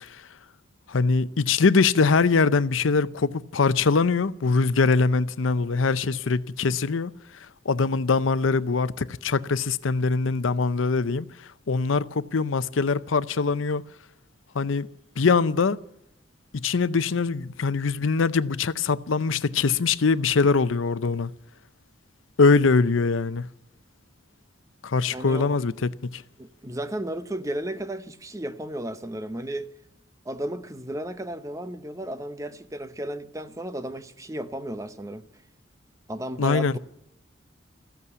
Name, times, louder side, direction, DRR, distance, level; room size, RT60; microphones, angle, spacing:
voice 1, 0.9-7.1 7.7-11.3 11.7-13.8 14.5-14.9 15.2-15.8 16.6-21.3 22.4-23.5 24.8-26.2 36.4-36.7, left 4 dB, 90° left, 0.6 m, -22 dB
voice 2, 25.1-25.5 26.4-29.7 30.2-35.2 36.1-36.8, right 1 dB, 15° right, 0.8 m, -34 dB
15.0 x 8.3 x 9.7 m
head